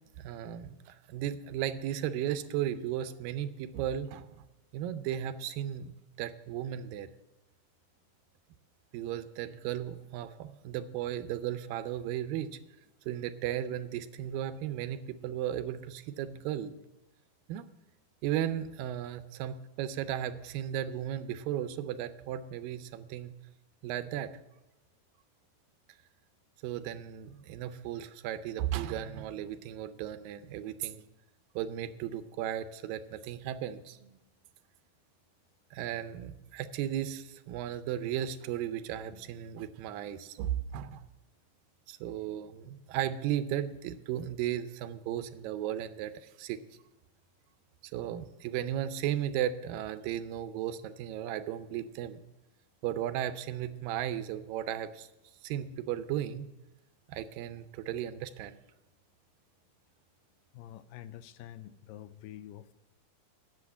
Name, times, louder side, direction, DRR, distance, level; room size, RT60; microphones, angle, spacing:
voice 1, 0.2-4.5 4.7-7.1 8.9-12.6 13.1-16.7 17.5-17.7 18.2-23.3 23.8-24.3 26.6-31.0 31.6-34.2 35.7-41.0 41.9-46.6 47.8-52.2 52.8-55.1 55.4-56.5 57.1-58.6, right 11 dB, 85° right, 12 dB, 2.4 m, -35 dB
voice 2, 60.5-62.7, left 12 dB, 85° left, 14 dB, 2.2 m, -47 dB
10.0 x 7.2 x 8.3 m, 1.0 s
omnidirectional pair, 3.9 m